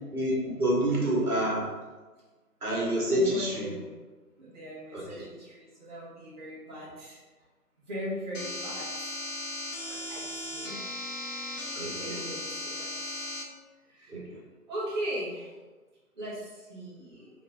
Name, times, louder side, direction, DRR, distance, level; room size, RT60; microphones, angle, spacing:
voice 1, 0.1-1.7 2.6-3.7 4.9-5.2 11.8-12.2 14.1-14.4, right 1 dB, 65° right, -4 dB, 1.3 m, -28 dB
voice 2, 3.1-4.0 4.4-7.2 7.9-9.1 10.1-10.8 11.9-12.9 13.9-14.3 14.7-15.5 16.1-17.3, equal, 30° right, -10 dB, 1.0 m, -39 dB
sound 1, 8.3-13.4, left 1 dB, 55° left, 0.7 m, -37 dB
3.2 x 2.9 x 3.3 m, 1.3 s
figure-of-eight pair, 150°, 47 cm